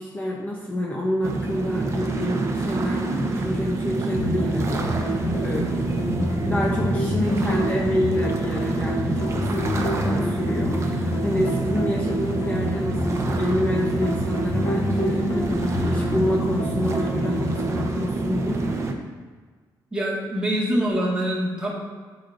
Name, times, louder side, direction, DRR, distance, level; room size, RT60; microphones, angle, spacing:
voice 1, 0.0-5.9 6.4-18.8, left 1 dB, 20° left, -2 dB, 0.9 m, -28 dB
sound 1, 1.2-18.9, right 3 dB, 40° right, 0.8 m, -27 dB
sound 2, 4.2-17.9, left 1 dB, 60° left, 1.4 m, -28 dB
voice 2, 19.9-21.7, equal, 10° right, -6 dB, 1.9 m, -24 dB
11.0 x 5.1 x 2.7 m, 1.5 s
cardioid pair, 125°, 8 cm